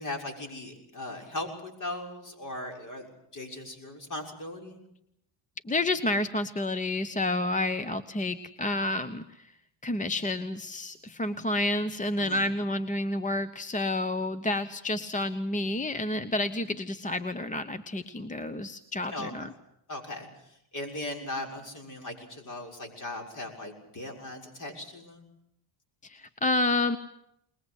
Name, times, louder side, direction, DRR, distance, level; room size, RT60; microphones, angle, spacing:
voice 1, 0.0-4.8 12.2-12.5 19.1-19.5 19.9-25.2, left 1 dB, 40° left, 2 dB, 6.4 m, -38 dB
voice 2, 5.7-9.4 9.8-19.5 26.0-27.0, left 2 dB, 15° left, 13 dB, 0.9 m, -29 dB
22.0 x 21.5 x 8.2 m, 0.78 s
cardioid pair, 105°, 48 cm